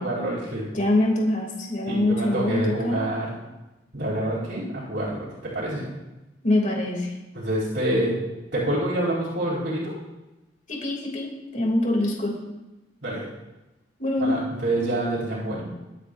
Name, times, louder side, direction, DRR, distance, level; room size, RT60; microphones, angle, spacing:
voice 1, 0.0-0.6 1.9-3.3 3.9-5.8 7.3-8.1 8.5-9.9 13.0-13.2 14.2-15.6, right 1 dB, 85° right, -10 dB, 4.5 m, -27 dB
voice 2, 0.7-3.0 6.4-7.1 10.7-11.3 11.5-12.4 14.0-14.4, left 1 dB, 45° left, -1 dB, 2.9 m, -24 dB
23.5 x 9.2 x 2.7 m, 1.0 s
head